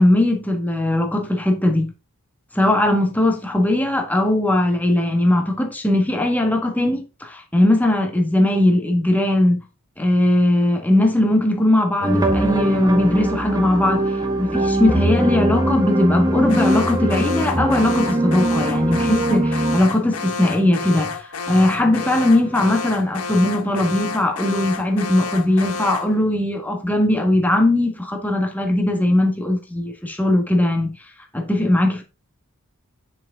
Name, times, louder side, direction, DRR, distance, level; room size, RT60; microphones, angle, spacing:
voice 1, 0.0-1.9 2.5-9.6 10.0-14.0 14.4-30.9 31.3-32.0, left 1 dB, 10° left, 1.5 m, -19 dB
sound 1, 12.0-19.8, right 1 dB, 20° right, 1.3 m, -21 dB
Alarm, 16.5-26.2, left 4 dB, 90° left, 1.0 m, -30 dB
9.9 x 6.1 x 3.7 m
head